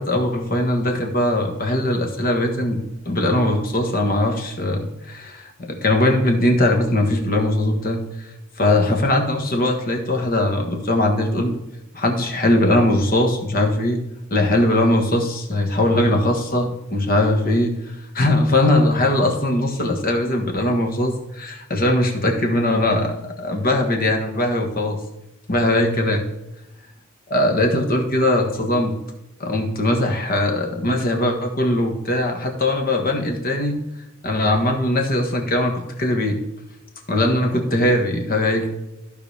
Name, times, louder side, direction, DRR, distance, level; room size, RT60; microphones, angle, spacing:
voice 1, 0.0-2.8 3.0-8.0 8.6-11.6 11.9-14.0 14.3-17.7 18.1-25.0 25.5-26.2 27.3-28.9 29.4-33.7 34.2-36.4 37.1-38.7, left 1 dB, 45° left, 3 dB, 1.6 m, -20 dB
15.0 x 5.1 x 3.4 m, 0.95 s
head